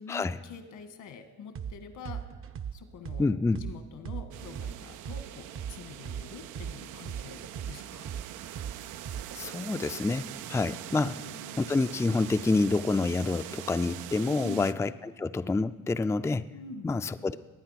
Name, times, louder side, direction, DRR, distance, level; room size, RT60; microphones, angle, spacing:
voice 1, 0.0-2.2 2.7-3.3 3.6-8.1 11.0-11.7 14.2-14.8 16.5-16.9, left 5 dB, 80° left, 7 dB, 1.8 m, -45 dB
sound 1, 1.5-1.7 2.0-5.7 6.0-9.5, right 8 dB, 45° right, 0.7 m, -38 dB
voice 2, 3.2-3.6 9.3-11.1 11.6-16.5 16.8-17.4, left 3 dB, 10° left, 10 dB, 0.4 m, -28 dB
sound 2, 4.3-14.7, right 13 dB, 90° right, 0.5 m, -43 dB
20.5 x 9.2 x 5.8 m, 1.3 s
cardioid pair, 90°, 30 cm